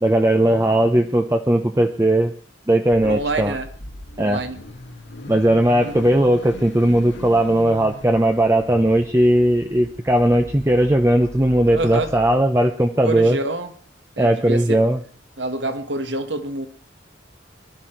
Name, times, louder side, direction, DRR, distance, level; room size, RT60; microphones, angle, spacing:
voice 1, 0.0-2.3 2.7-3.6 4.2-4.4 5.3-13.4 14.2-15.0, right 1 dB, 15° right, 5 dB, 0.8 m, -18 dB
Car / Idling / Accelerating revving vroom, 2.9-12.4, left 1 dB, 80° left, 2.1 m, -39 dB
voice 2, 3.0-3.7 4.2-4.6 5.8-6.1 11.7-12.1 13.0-13.7 14.2-14.8 15.4-16.7, right 2 dB, 75° right, 8 dB, 1.8 m, -27 dB
20.5 x 12.5 x 4.6 m, 0.43 s
head